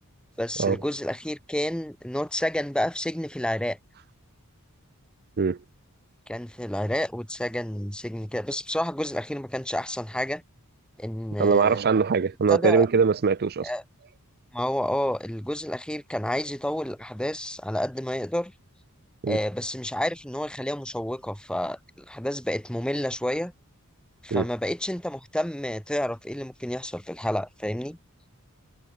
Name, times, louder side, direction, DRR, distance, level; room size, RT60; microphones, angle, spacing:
voice 1, 0.4-3.8 6.3-10.4 11.0-11.8 12.5-12.9 13.6-13.8 14.5-18.5 19.3-23.5 24.2-28.0, left 1 dB, 5° left, 1.5 m, -30 dB
voice 2, 11.4-13.7 19.2-19.4 24.3-24.5, right 5 dB, 45° right, 0.5 m, -22 dB
head